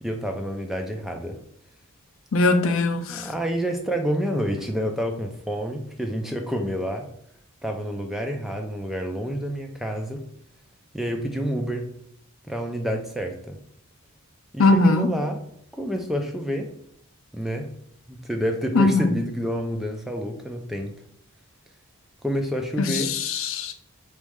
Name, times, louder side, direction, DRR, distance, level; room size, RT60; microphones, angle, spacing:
voice 1, 0.0-1.4 3.1-7.1 7.6-10.2 10.9-11.9 12.5-13.6 14.5-15.4 15.7-16.7 17.3-17.7 18.1-21.0 22.2-23.1, equal, ahead, 3 dB, 0.3 m, -28 dB
voice 2, 2.3-3.3 14.6-15.1 18.7-19.1 22.8-23.7, left 3 dB, 65° left, 7 dB, 0.5 m, -20 dB
4.1 x 3.2 x 3.5 m, 0.69 s
head